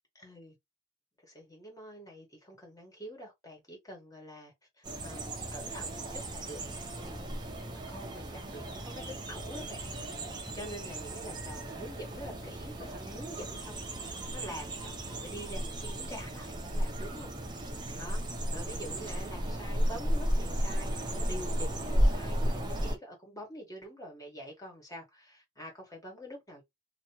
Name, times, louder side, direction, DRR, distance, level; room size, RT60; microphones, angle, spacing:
voice 1, 0.2-0.5 1.2-4.5 5.0-6.6 6.9-7.2 7.9-9.8 10.5-17.3 18.0-18.2 18.5-26.6, equal, 20° left, 1.6 m, -46 dB
sound 1, 4.8-23.0, equal, 25° right, 0.8 m, -34 dB
2.9 x 2.9 x 2.9 m
head